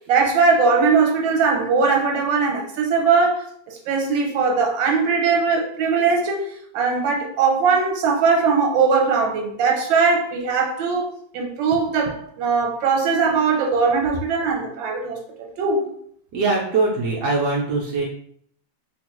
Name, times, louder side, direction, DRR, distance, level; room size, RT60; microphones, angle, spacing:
voice 1, 0.1-6.5 6.7-15.9, right 5 dB, 90° right, 1.4 m, -20 dB
voice 2, 16.3-18.0, right 3 dB, 70° right, 1.1 m, -22 dB
3.5 x 2.4 x 2.9 m
omnidirectional pair, 2.0 m